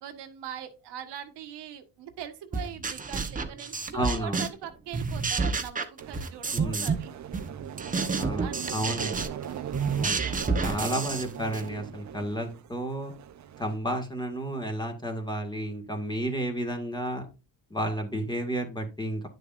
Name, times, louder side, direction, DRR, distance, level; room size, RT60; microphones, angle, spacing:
voice 1, 0.0-7.1 8.4-9.1 9.4-9.9, right 9 dB, 85° right, 5 dB, 1.5 m, -41 dB
sound 1, 2.5-4.6 4.9-7.0 7.3-11.7, right 4 dB, 20° right, 1.0 m, -30 dB
voice 2, 3.9-4.4 6.5-6.9 8.1-9.2 10.0-10.1 10.6-13.1 13.6-17.3 17.7-19.3, right 1 dB, 10° left, 4 dB, 1.9 m, -31 dB
sound 2, 6.0-13.8, right 10 dB, 45° right, 0.7 m, -40 dB
10.5 x 6.7 x 2.6 m, 0.29 s
cardioid pair, 115°, 40 cm